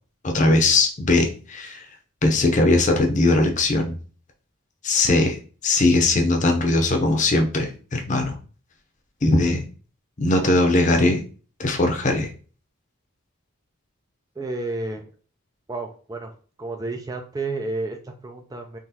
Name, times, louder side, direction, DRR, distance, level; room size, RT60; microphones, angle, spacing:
voice 1, 0.2-1.8 2.2-3.9 4.8-5.4 5.6-8.3 9.2-9.6 10.2-11.2 11.6-12.3, left 2 dB, 35° left, 3 dB, 0.7 m, -20 dB
voice 2, 14.4-15.1 15.7-16.3 16.6-18.8, right 2 dB, 15° right, 4 dB, 0.3 m, -31 dB
3.8 x 3.0 x 2.8 m, 0.39 s
head